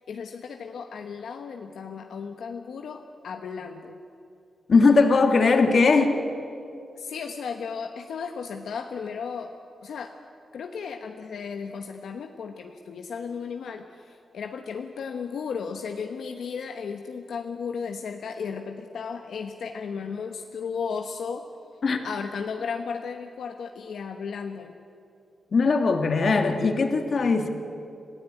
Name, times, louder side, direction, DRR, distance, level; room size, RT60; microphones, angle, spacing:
voice 1, 0.1-4.0 7.0-9.5 9.8-10.1 10.5-21.4 22.0-24.8, left 6 dB, 85° left, 5 dB, 1.1 m, -35 dB
voice 2, 4.7-6.1 21.8-22.0 25.5-27.5, left 4 dB, 55° left, 5 dB, 2.1 m, -20 dB
26.5 x 15.5 x 9.0 m, 2.6 s
cardioid pair, 85°, 0 cm